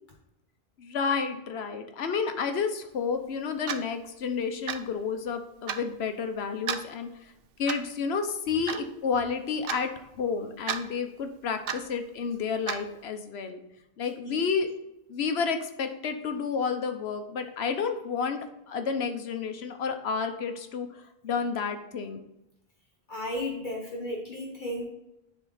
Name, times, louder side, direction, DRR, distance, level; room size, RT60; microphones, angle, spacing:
voice 1, 0.8-7.1 7.6-13.6 14.0-14.7 15.1-20.9 21.2-22.2, left 5 dB, 85° left, 7 dB, 1.0 m, -30 dB
Clock, 3.7-3.9 4.7-4.9 5.7-5.8 6.7-6.9 7.7-7.9 8.7-8.8 9.7-9.8 10.7-10.8 11.7-11.9 12.7-12.8, right 8 dB, 65° right, 0.8 m, -32 dB
voice 2, 23.1-24.9, left 1 dB, 50° left, -1 dB, 1.3 m, -34 dB
10.0 x 3.7 x 3.9 m, 0.86 s
omnidirectional pair, 1.0 m